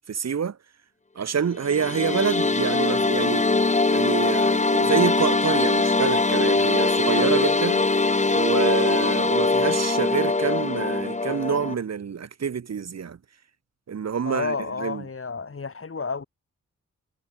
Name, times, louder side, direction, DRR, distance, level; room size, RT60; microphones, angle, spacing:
voice 1, 0.1-0.6 1.1-3.4 3.9-7.8 8.3-13.2 13.9-15.0, right 7 dB, 60° right, 1.2 m, -27 dB
sound 1, 1.6-11.7, left 3 dB, 25° left, 1.3 m, -22 dB
voice 2, 14.2-16.2, left 4 dB, 45° left, 3.1 m, -31 dB
wide cardioid pair, 100°, 30 cm